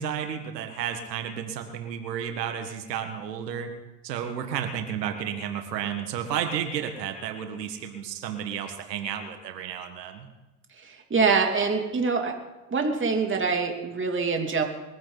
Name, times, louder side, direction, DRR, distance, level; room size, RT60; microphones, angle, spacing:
voice 1, 0.0-3.7 4.0-10.3, right 8 dB, 90° right, 6 dB, 1.8 m, -32 dB
voice 2, 10.8-12.3 12.7-14.6, right 4 dB, 25° right, 3 dB, 2.9 m, -25 dB
22.0 x 15.0 x 4.1 m, 1.1 s
hypercardioid pair, 85°, 48 cm